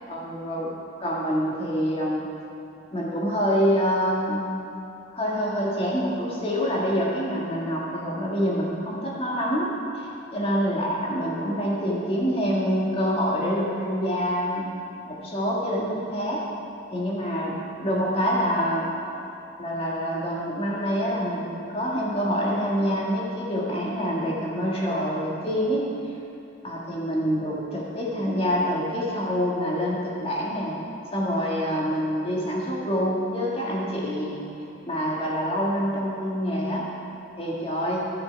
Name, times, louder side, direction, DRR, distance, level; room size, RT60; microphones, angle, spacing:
voice 1, 0.1-2.3 2.9-4.5 5.1-14.7 15.0-16.4 16.9-18.9 19.6-25.9 26.6-30.8 31.1-34.5 34.8-36.9 37.4-38.1, equal, 30° left, -4 dB, 1.7 m, -26 dB
13.0 x 6.8 x 4.7 m, 2.9 s
head